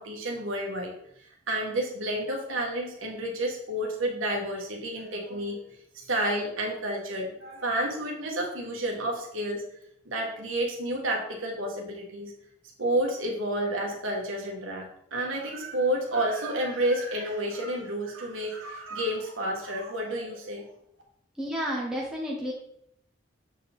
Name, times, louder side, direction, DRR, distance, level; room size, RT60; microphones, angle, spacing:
voice 1, 0.0-9.6 10.0-12.3 12.8-20.6, right 1 dB, 85° right, -1 dB, 1.6 m, -30 dB
voice 2, 21.4-22.5, equal, 5° right, -3 dB, 0.9 m, -31 dB
7.3 x 4.8 x 3.5 m, 0.72 s
head